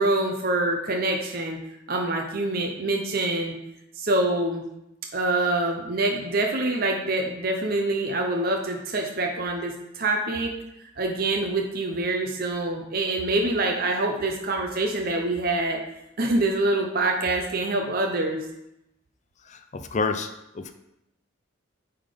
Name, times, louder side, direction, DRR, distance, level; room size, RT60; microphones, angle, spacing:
voice 1, 0.0-1.6 1.9-3.6 4.0-4.6 5.1-10.5 10.8-15.8 16.2-18.4, right 2 dB, 45° right, 1 dB, 0.8 m, -25 dB
voice 2, 19.4-20.7, left 4 dB, 35° left, 8 dB, 0.4 m, -29 dB
8.7 x 3.8 x 5.1 m, 0.86 s
head